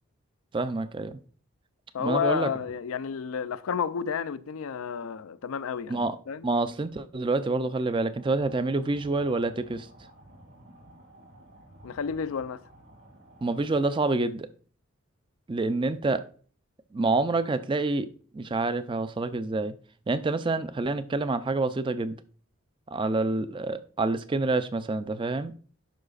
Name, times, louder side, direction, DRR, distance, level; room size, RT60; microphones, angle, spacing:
voice 1, 0.5-1.2 2.0-2.5 5.9-6.2 6.4-9.9 13.4-14.5 15.5-16.2 16.9-19.7 20.1-22.1 22.9-25.5, right 3 dB, 25° right, 0.4 m, -27 dB
voice 2, 1.9-6.5 11.8-12.6, left 7 dB, 80° left, 0.4 m, -31 dB
sound 1, 8.1-13.7, right 1 dB, 70° right, 3.1 m, -52 dB
11.5 x 4.8 x 2.4 m
head